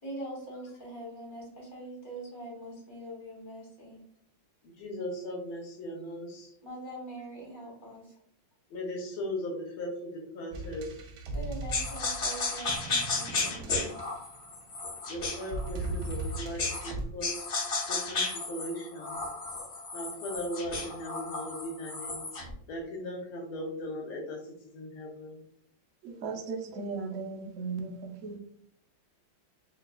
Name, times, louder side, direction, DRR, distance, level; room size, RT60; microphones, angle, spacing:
voice 1, 0.0-4.0 6.6-8.1 11.3-13.9, right 1 dB, 30° left, 1.2 m, -43 dB
voice 2, 4.6-6.5 8.7-10.9 15.1-17.5 17.9-19.2 19.9-22.3 22.7-24.4 24.7-25.4, equal, 90° left, 1.8 m, -38 dB
sound 1, 10.5-14.6 15.4-17.1, right 2 dB, 85° right, 1.6 m, -38 dB
sound 2, 11.7-16.9 17.2-22.5, left 3 dB, 55° left, 0.8 m, -34 dB
voice 3, 26.0-28.4, right 4 dB, 70° right, 0.7 m, -37 dB
4.6 x 2.8 x 2.3 m
omnidirectional pair, 2.2 m